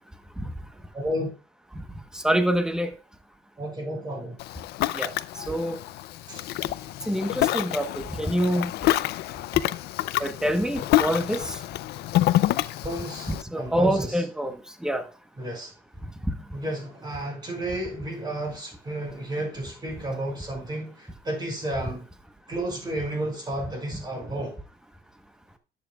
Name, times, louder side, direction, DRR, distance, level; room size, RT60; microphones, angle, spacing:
voice 1, 0.9-1.3 3.6-4.4 6.3-6.4 12.8-14.2 15.4-15.7 16.5-22.1 22.5-24.6, right 1 dB, 25° right, 5.1 m, -32 dB
voice 2, 2.1-2.9 4.9-5.1 5.5-5.8 7.1-8.7 10.2-11.6 13.3-14.6 14.8-15.0, equal, 5° right, 1.0 m, -26 dB
Ocean, 4.4-13.4, left 15 dB, 75° left, 0.4 m, -27 dB
11.0 x 8.0 x 2.3 m
cardioid pair, 110°, 17 cm